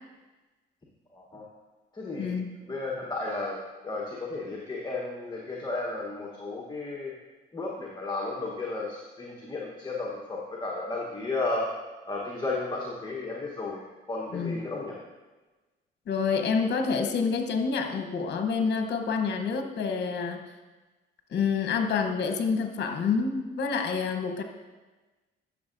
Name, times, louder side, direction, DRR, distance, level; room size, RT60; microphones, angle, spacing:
voice 1, 1.1-1.5 1.9-2.4 2.7-3.6 3.8-7.1 7.5-11.7 12.0-13.8 14.1-15.0, left 3 dB, 20° left, -3 dB, 1.1 m, -33 dB
voice 2, 2.2-2.6 14.3-14.7 16.1-20.5 21.3-24.4, left 5 dB, 60° left, 5 dB, 0.9 m, -28 dB
12.0 x 6.6 x 2.6 m, 1.2 s
cardioid pair, 90°, 20 cm